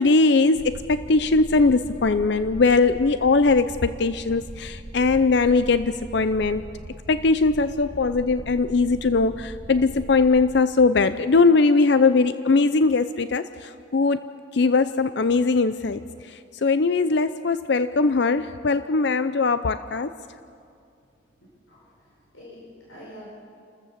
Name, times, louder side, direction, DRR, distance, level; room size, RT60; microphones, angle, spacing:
voice 1, 0.0-6.6 7.1-13.4 13.9-14.2 14.5-16.0 16.6-20.1, left 3 dB, 55° left, 12 dB, 0.5 m, -20 dB
sound 1, 0.5-10.6, right 1 dB, 45° right, 1.2 m, -40 dB
voice 2, 21.4-21.9 22.3-23.2, equal, 80° left, -6 dB, 5.5 m, -45 dB
29.5 x 14.5 x 7.3 m, 2.4 s
head